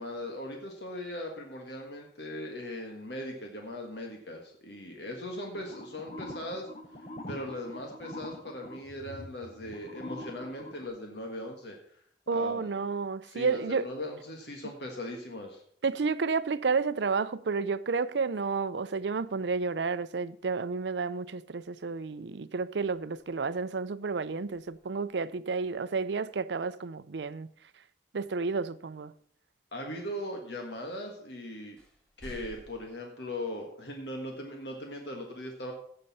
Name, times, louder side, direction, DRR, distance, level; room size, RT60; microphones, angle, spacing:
voice 1, 0.0-6.7 7.3-11.8 12.3-12.7 13.2-15.6 29.7-31.8 32.2-35.7, left 1 dB, 75° left, 1.6 m, -39 dB
sound 1, 5.5-10.9, left 1 dB, 40° left, 1.2 m, -44 dB
voice 2, 12.3-13.9 15.8-27.5 28.1-29.1, right 4 dB, 85° right, 0.5 m, -31 dB
sound 2, 24.4-25.3 28.9-29.0 31.0-31.1 31.8-32.9, equal, 5° left, 3.0 m, -52 dB
16.5 x 6.7 x 4.2 m
head